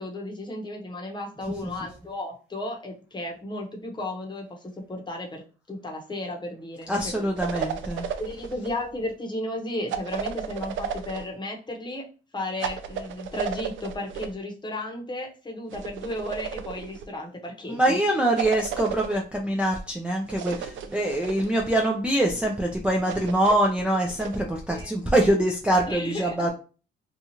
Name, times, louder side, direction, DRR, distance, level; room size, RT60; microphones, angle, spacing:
voice 1, 0.0-5.4 5.7-7.2 8.2-12.1 12.3-18.2 20.7-21.0 24.7-24.9 25.8-26.5, left 1 dB, 20° left, 1 dB, 0.9 m, -34 dB
voice 2, 6.9-8.1 17.7-26.5, right 1 dB, 5° right, 0 dB, 0.4 m, -24 dB
sound 1, 7.4-8.7 9.9-11.3 12.6-14.3 15.7-17.1 18.4-19.2 20.3-21.8 23.1-24.4, right 7 dB, 75° right, 0.4 m, -34 dB
2.8 x 2.4 x 2.8 m, 0.35 s
cardioid pair, 90°, 20 cm